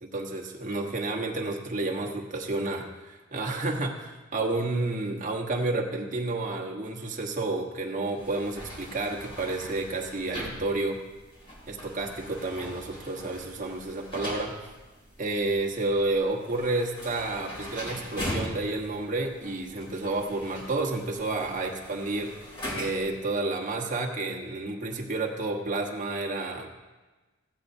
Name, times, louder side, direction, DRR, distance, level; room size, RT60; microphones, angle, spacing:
voice 1, 0.0-11.0 11.7-14.6 15.2-22.5 22.7-26.8, right 2 dB, 40° right, 0 dB, 1.2 m, -30 dB
sound 1, 8.1-23.2, equal, 25° left, 2.5 m, -41 dB
15.0 x 8.9 x 2.7 m, 1.2 s
head